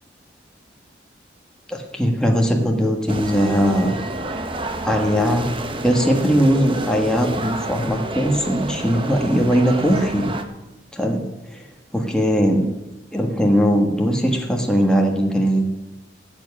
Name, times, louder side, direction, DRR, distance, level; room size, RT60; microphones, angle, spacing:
voice 1, 1.7-3.9 4.8-5.5 5.8-10.3 10.9-11.2 11.5-11.6 11.9-12.7 13.1-15.6, equal, 5° left, 1 dB, 1.5 m, -19 dB
sound 1, 3.1-10.4, right 2 dB, 30° right, 0.9 m, -30 dB
13.0 x 7.5 x 8.5 m, 0.99 s
head